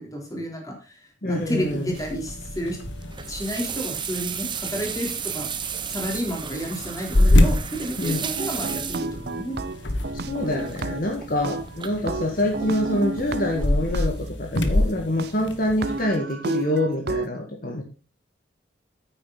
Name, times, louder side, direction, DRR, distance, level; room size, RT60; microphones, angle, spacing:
voice 1, 0.0-2.8 3.3-5.5 5.9-9.6, equal, 20° left, 1 dB, 3.6 m, -31 dB
voice 2, 1.2-1.9 8.0-8.3 10.1-17.8, left 1 dB, 50° left, 1 dB, 1.8 m, -26 dB
sound 1, 1.3-16.1, left 1 dB, 75° left, 1.5 m, -27 dB
sound 2, 1.9-14.0, right 7 dB, 25° right, 0.9 m, -35 dB
sound 3, 8.4-11.2 11.4-14.1 14.6-14.7 15.2-15.3 15.7-17.3, right 2 dB, 60° right, 0.7 m, -31 dB
9.6 x 9.3 x 4.0 m, 0.35 s
head